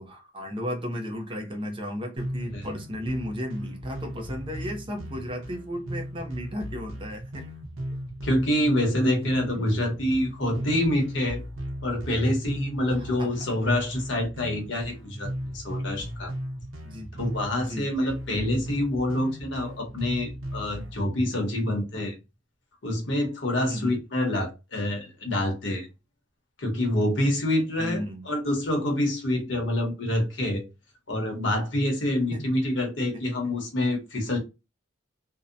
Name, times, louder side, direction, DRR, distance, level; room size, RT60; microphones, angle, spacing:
voice 1, 0.0-7.5 9.5-9.7 12.9-13.3 16.8-17.1 17.5-17.9 23.6-24.0 27.8-28.3 32.3-32.4, equal, 25° right, 0.5 m, -34 dB
sound 1, 2.2-21.0, equal, 75° right, 0.7 m, -37 dB
voice 2, 8.2-11.4 11.8-16.3 17.2-22.2 22.8-25.9 26.6-30.7 31.1-34.4, left 1 dB, 60° left, 0.9 m, -26 dB
2.6 x 2.0 x 2.5 m
head